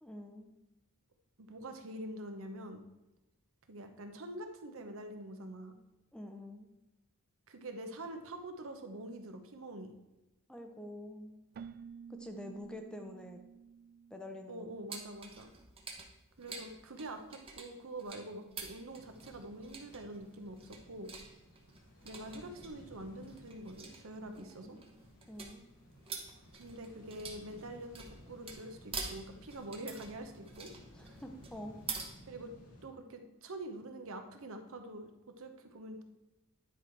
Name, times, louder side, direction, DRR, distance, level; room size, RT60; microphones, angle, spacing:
voice 1, 0.0-0.5 6.1-6.7 10.5-11.4 12.1-13.4 14.1-15.0 24.4-24.9 25.3-25.7 30.9-31.8, left 1 dB, 5° left, 5 dB, 0.6 m, -47 dB
voice 2, 1.4-2.8 3.7-5.7 7.5-9.9 14.5-15.5 16.4-21.1 22.0-24.8 26.6-30.7 32.3-32.5 32.8-36.0, right 1 dB, 65° right, 6 dB, 0.9 m, -45 dB
Keyboard (musical), 11.5-15.2, right 6 dB, 45° right, 0.3 m, -52 dB
sound 1, 14.9-32.1, right 4 dB, 25° right, 1.0 m, -47 dB
sound 2, 18.9-32.9, equal, 85° left, 1.5 m, -58 dB
9.9 x 4.8 x 4.5 m, 0.97 s
head